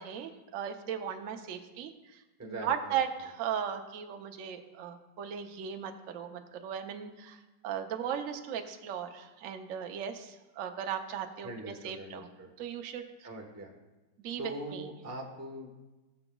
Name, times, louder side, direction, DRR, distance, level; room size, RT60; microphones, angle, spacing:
voice 1, 0.0-12.3 12.6-13.1 14.2-14.4 14.7-14.9, right 8 dB, 65° right, 6 dB, 0.8 m, -37 dB
voice 2, 2.4-3.0 11.4-12.5 13.2-13.7 14.4-15.7, right 2 dB, 15° right, 1 dB, 0.5 m, -42 dB
17.5 x 6.9 x 2.3 m, 1.1 s
omnidirectional pair, 2.1 m